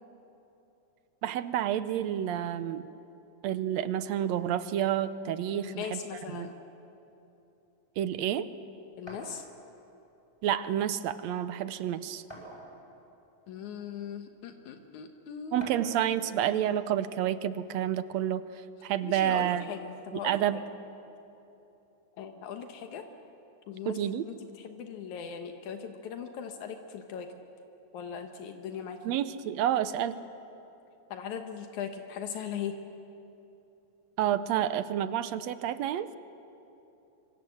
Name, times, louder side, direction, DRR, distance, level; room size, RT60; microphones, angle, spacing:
voice 1, 1.2-2.9 3.4-6.0 6.3-6.5 8.0-8.5 10.4-12.2 15.5-18.4 18.8-19.7 20.1-20.6 23.9-24.3 29.0-30.2 34.2-36.1, right 11 dB, 75° right, 13 dB, 1.9 m, -29 dB
voice 2, 5.5-6.5 9.0-9.5 13.5-15.7 19.0-20.6 22.2-23.0 23.7-24.0 24.3-27.4 27.9-29.1 31.1-32.8, left 7 dB, 85° left, 5 dB, 2.6 m, -39 dB
sound 1, 9.1-9.3 10.5-10.6 11.0-11.1 12.3-12.9 13.8-13.9 15.6-16.0, right 1 dB, 10° left, 7.2 m, -45 dB
25.5 x 25.5 x 7.8 m, 2.9 s
omnidirectional pair, 3.3 m